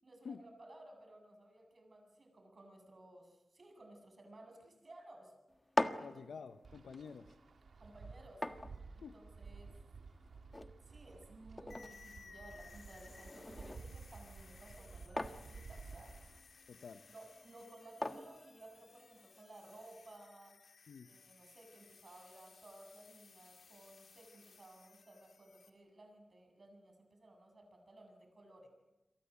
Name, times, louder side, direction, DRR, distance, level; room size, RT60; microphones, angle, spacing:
voice 1, 0.0-5.3 6.0-6.1 7.8-8.4 9.0-9.7 10.8-16.1 17.1-20.5 21.0-28.7, right 1 dB, 40° right, 4 dB, 7.9 m, -57 dB
sound 1, 5.5-19.4, left 1 dB, 20° left, 1.5 m, -45 dB
voice 2, 6.0-7.4 9.0-9.1 16.7-17.0 20.9-21.1, left 6 dB, 80° left, 9 dB, 1.0 m, -49 dB
Wind, 6.6-16.4, right 4 dB, 70° right, 1.7 m, -54 dB
sound 2, 11.7-25.7, left 5 dB, 65° left, 2.9 m, -61 dB
28.5 x 23.5 x 8.4 m, 1.0 s
wide cardioid pair, 105°, 0 cm